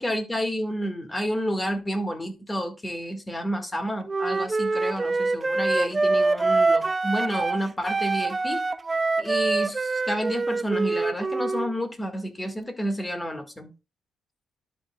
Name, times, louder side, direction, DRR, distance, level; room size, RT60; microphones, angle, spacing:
voice 1, 0.0-8.6 9.2-13.7, equal, 15° left, 1.8 m, -30 dB
Wind instrument woodwind instrument, 4.1-7.6 7.9-11.7, right 3 dB, 25° right, 0.5 m, -25 dB
12.0 x 5.9 x 2.3 m
cardioid pair, 90°, 0 cm